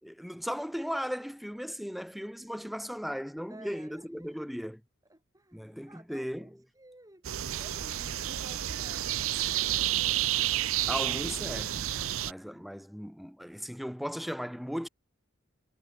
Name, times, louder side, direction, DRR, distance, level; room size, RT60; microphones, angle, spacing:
voice 1, 0.0-4.8 5.5-6.6 10.9-11.9 12.2-14.9, equal, ahead, 3.7 m, -37 dB
voice 2, 3.5-4.4 5.1-10.2, right 1 dB, 15° right, 5.2 m, -55 dB
sound 1, 7.2-12.3, right 13 dB, 70° right, 0.7 m, -30 dB
head